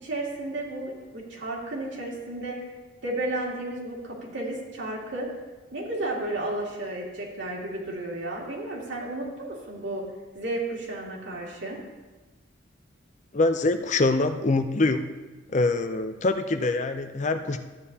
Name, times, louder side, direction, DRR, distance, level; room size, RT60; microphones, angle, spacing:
voice 1, 0.0-2.6 3.0-5.3 5.7-10.0 10.3-11.8, right 2 dB, 70° right, -3 dB, 2.3 m, -33 dB
voice 2, 13.3-15.1 15.5-17.6, left 2 dB, 40° left, 8 dB, 0.5 m, -24 dB
13.5 x 9.3 x 2.8 m, 1.2 s
head